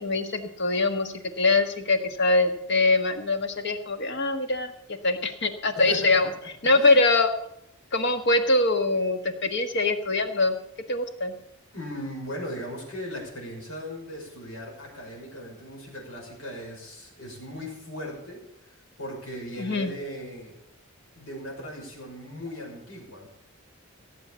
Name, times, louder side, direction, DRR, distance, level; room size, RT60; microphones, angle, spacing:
voice 1, 0.0-4.7 5.0-6.3 6.6-7.3 7.9-10.6 10.9-11.3 19.6-19.9, left 2 dB, 55° left, 7 dB, 1.5 m, -23 dB
voice 2, 5.9-6.3 6.7-7.0 11.7-20.5 21.2-23.3, equal, 85° left, -2 dB, 5.8 m, -38 dB
16.5 x 8.0 x 7.0 m, 0.76 s
head